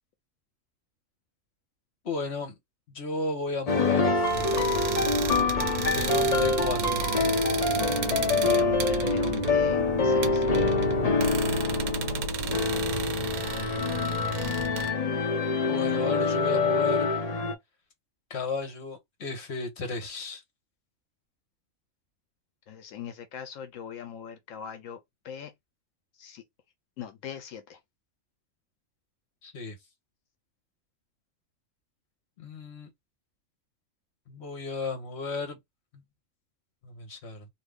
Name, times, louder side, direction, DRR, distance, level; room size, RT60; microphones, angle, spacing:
voice 1, 2.0-2.5 2.9-4.3 5.9-7.1 11.3-11.4 12.8-13.3 15.7-17.1 18.3-20.4 29.4-29.8 32.4-32.9 34.3-35.6 36.8-37.5, left 3 dB, 55° left, 1.2 m, -34 dB
sound 1, 3.7-17.6, left 4 dB, 40° left, 0.6 m, -26 dB
sound 2, 4.3-11.2, right 4 dB, 50° right, 0.8 m, -35 dB
sound 3, 4.3-14.9, right 7 dB, 80° right, 1.0 m, -34 dB
voice 2, 8.4-10.5 22.7-25.5 26.2-26.5 27.0-27.8, left 8 dB, 80° left, 1.0 m, -41 dB
2.6 x 2.6 x 3.4 m
omnidirectional pair, 1.3 m